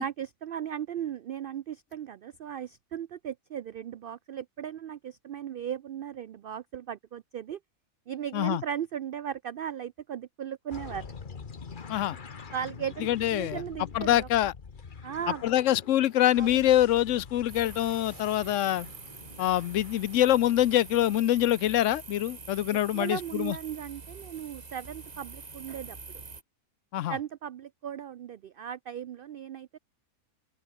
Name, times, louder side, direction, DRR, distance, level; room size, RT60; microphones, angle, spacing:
voice 1, 0.0-7.6 8.1-11.1 12.5-14.3 15.0-15.4 16.4-16.7 22.7-26.0 27.1-29.8, right 9 dB, 75° right, 0.5 m, -37 dB
sound 1, 10.7-21.8, left 5 dB, 40° left, 1.3 m, -46 dB
voice 2, 13.0-13.6 13.9-14.5 15.4-18.9 19.4-23.6 26.9-27.2, left 12 dB, 70° left, 0.9 m, -25 dB
sound 2, 17.5-26.4, right 4 dB, 30° right, 1.4 m, -46 dB
open air
omnidirectional pair, 1.5 m